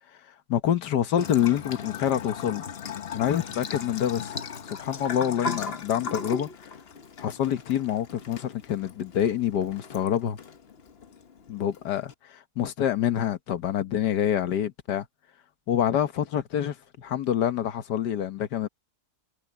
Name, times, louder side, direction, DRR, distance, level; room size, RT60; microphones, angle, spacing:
voice 1, 0.5-2.6 3.1-4.3 4.7-6.7 7.2-10.4 11.5-15.0 15.7-18.7, left 10 dB, 85° left, 1.7 m, -27 dB
Bathtub (filling or washing) / Trickle dribble, 1.2-12.1, left 5 dB, 40° left, 1.2 m, -38 dB
omnidirectional pair, 1.7 m